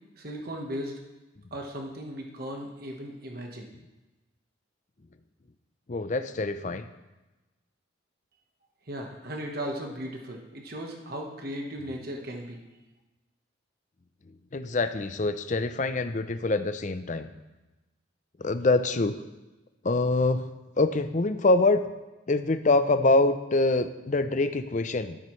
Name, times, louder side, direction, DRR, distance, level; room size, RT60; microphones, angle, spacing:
voice 1, 0.2-0.9 1.5-3.7 8.9-12.6, equal, 50° right, 1 dB, 1.2 m, -36 dB
voice 2, 5.9-6.9 14.5-17.3 18.4-19.1 19.8-20.4 20.8-21.8 22.3-25.2, left 2 dB, 40° left, 10 dB, 0.5 m, -25 dB
13.0 x 12.0 x 3.2 m, 1.1 s
head